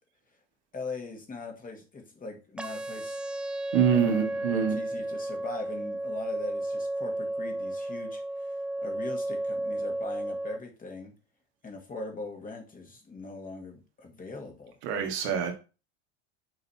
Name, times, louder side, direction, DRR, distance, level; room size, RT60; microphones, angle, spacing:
voice 1, 0.7-3.2 4.0-11.1 11.6-14.8, left 3 dB, 25° left, 1.9 m, -41 dB
sound 1, 2.6-10.6, right 1 dB, 5° right, 0.3 m, -33 dB
voice 2, 3.7-4.8 14.8-15.5, right 7 dB, 70° right, 1.8 m, -25 dB
6.6 x 4.1 x 4.2 m
hypercardioid pair, 95°, 34 cm